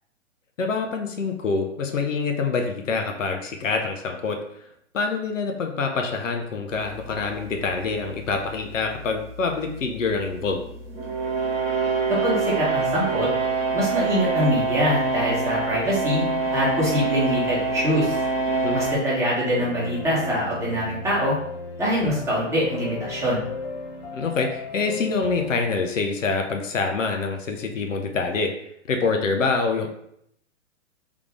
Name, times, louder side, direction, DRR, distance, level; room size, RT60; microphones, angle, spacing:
voice 1, 0.6-4.4 4.9-10.6 18.6-18.8 24.1-28.5 28.9-29.9, left 4 dB, 80° left, 3 dB, 0.8 m, -26 dB
sound 1, 6.7-19.0, right 4 dB, 25° right, 1.6 m, -26 dB
voice 2, 12.2-13.3 13.7-16.2 16.5-18.2 18.7-21.3 21.8-23.4, equal, 5° right, -7 dB, 1.5 m, -24 dB
sound 2, 19.5-25.5, left 3 dB, 50° left, 0.9 m, -35 dB
3.6 x 3.3 x 3.6 m, 0.73 s
hypercardioid pair, 125°, 38 cm